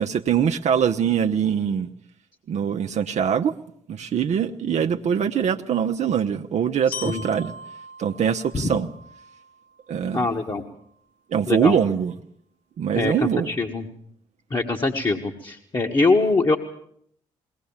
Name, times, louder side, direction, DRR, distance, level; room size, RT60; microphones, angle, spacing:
voice 1, 0.0-1.9 2.5-3.6 3.9-7.5 8.0-8.9 9.9-10.3 11.3-12.1 12.8-13.5, right 8 dB, 55° right, 5 dB, 0.8 m, -23 dB
Glockenspiel, 6.9-10.9, left 3 dB, 65° left, 1.9 m, -41 dB
voice 2, 10.1-10.6 11.5-11.8 13.0-13.1 13.5-13.8 14.5-16.6, left 3 dB, 30° left, 1 dB, 1.7 m, -23 dB
21.0 x 18.5 x 7.3 m, 0.68 s
hypercardioid pair, 50°, 14 cm